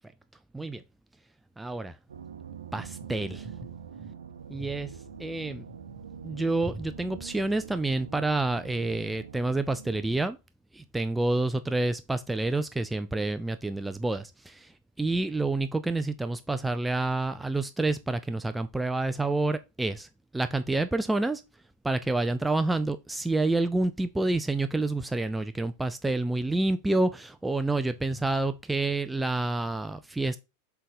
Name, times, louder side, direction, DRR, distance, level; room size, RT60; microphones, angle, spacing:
voice 1, 1.6-1.9 2.7-3.5 4.5-4.9 5.2-5.6 6.2-10.4 10.7-14.7 15.0-20.1 20.3-21.4 21.8-30.4, right 2 dB, 5° right, 0.4 m, -28 dB
sound 1, 2.1-10.3, right 7 dB, 65° right, 0.7 m, -44 dB
7.3 x 3.4 x 4.0 m
figure-of-eight pair, 90°, 0 cm